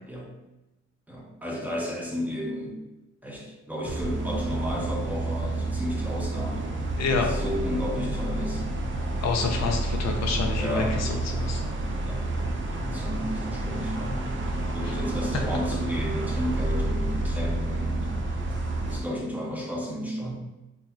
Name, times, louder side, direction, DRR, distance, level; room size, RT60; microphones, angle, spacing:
voice 1, 1.1-2.8 3.2-6.7 7.1-8.6 10.6-11.2 11.6-12.3 12.7-18.1 18.9-20.3, equal, 5° right, -3 dB, 0.8 m, -33 dB
sound 1, 3.8-19.0, right 2 dB, 40° right, 0.6 m, -29 dB
voice 2, 7.0-7.3 9.2-11.6 14.8-14.9, left 4 dB, 60° left, 2 dB, 0.6 m, -28 dB
3.9 x 2.9 x 2.9 m, 1.0 s
cardioid pair, 90°, 30 cm